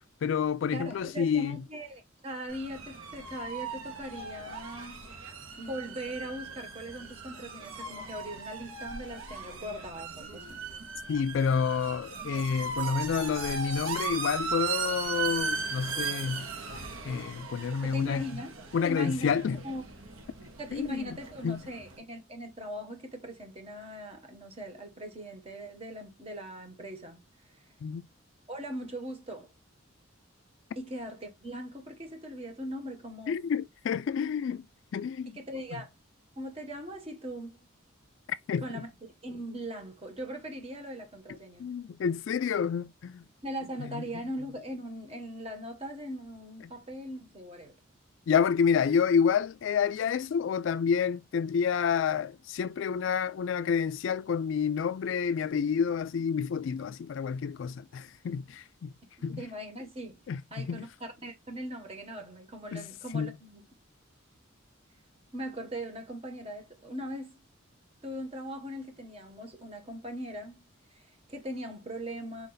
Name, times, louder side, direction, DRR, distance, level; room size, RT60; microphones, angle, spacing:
voice 1, 0.2-1.6 11.1-16.5 17.0-18.2 18.7-19.6 20.7-21.0 21.4-21.6 27.8-28.0 33.3-34.7 34.9-35.3 38.5-38.6 41.6-43.2 43.9-44.0 48.3-58.9 59.2-59.4 60.3-60.8 62.7-62.9 63.1-63.3, left 6 dB, 65° left, 0.3 m, -29 dB
voice 2, 0.7-5.2 5.6-10.7 17.7-19.8 20.6-27.2 28.5-29.5 30.7-33.5 35.4-35.9 36.4-37.7 38.6-38.9 39.2-41.7 43.4-47.8 59.3-60.2 60.5-63.6 65.3-67.4 68.0-72.5, equal, 30° right, 1.3 m, -40 dB
sound 1, 2.5-22.0, right 5 dB, 90° right, 1.2 m, -38 dB
4.5 x 2.6 x 3.9 m
head